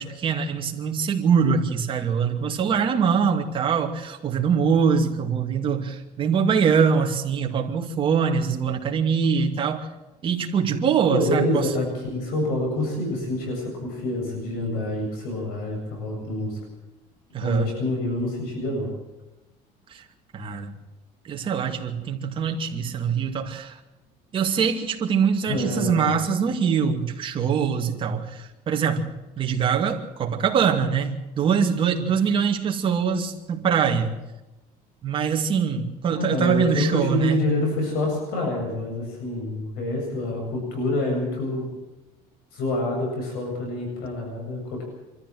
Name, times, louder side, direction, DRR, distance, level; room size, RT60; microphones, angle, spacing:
voice 1, 0.0-9.9 10.2-11.7 17.3-17.7 19.9-20.0 20.3-20.7 21.2-23.8 24.3-29.1 29.4-34.1 35.0-37.4, right 6 dB, 35° right, 3 dB, 2.4 m, -23 dB
voice 2, 11.1-16.6 17.4-18.9 25.5-26.1 36.1-41.7 42.5-44.8, left 1 dB, 80° left, 1 dB, 7.9 m, -27 dB
24.5 x 14.0 x 7.7 m, 1.0 s
cardioid pair, 150°, 16 cm